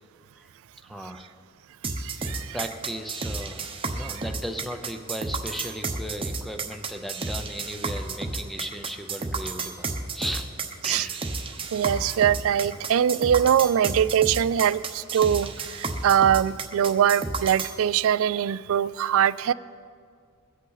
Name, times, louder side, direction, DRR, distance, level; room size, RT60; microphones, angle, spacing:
voice 1, 0.8-1.3 2.3-9.9 10.1-10.5 10.8-11.2, equal, ahead, 6 dB, 0.7 m, -36 dB
sound 1, 1.8-17.8, right 3 dB, 25° right, 0.9 m, -32 dB
voice 2, 2.0-2.6 4.0-4.2 10.8-11.1 11.7-19.5, right 9 dB, 65° right, 18 dB, 0.3 m, -22 dB
21.0 x 8.2 x 4.1 m, 2.1 s
head